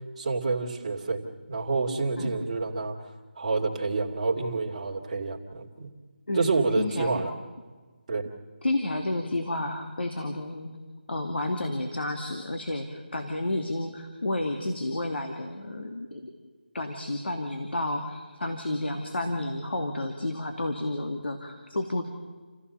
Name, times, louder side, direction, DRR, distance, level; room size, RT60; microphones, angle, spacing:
voice 1, 0.2-1.2 1.5-3.1 3.4-5.9 6.3-7.3 8.1-8.3, right 3 dB, 35° right, 0 dB, 2.5 m, -28 dB
voice 2, 6.8-7.3 8.6-10.8 11.1-16.3 16.7-22.0, left 2 dB, 80° left, 4 dB, 2.6 m, -31 dB
29.0 x 15.5 x 6.9 m, 1.4 s
figure-of-eight pair, 170°, 6 cm